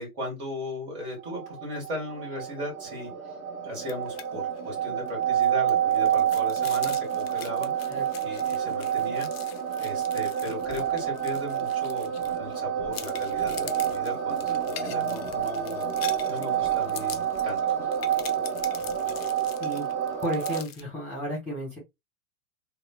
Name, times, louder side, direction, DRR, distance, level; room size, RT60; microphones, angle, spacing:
voice 1, 0.0-3.1 3.6-7.9 8.2-9.3 9.8-17.6, left 1 dB, 45° right, 1.6 m, -37 dB
sound 1, 1.1-20.6, right 9 dB, 15° right, 0.6 m, -28 dB
sound 2, 3.8-4.3 4.6-4.7 5.1-12.6 12.9-20.8, left 9 dB, 45° left, 0.4 m, -43 dB
voice 2, 20.2-21.8, equal, 5° left, 1.3 m, -32 dB
3.0 x 2.0 x 2.3 m
figure-of-eight pair, 100°, 44 cm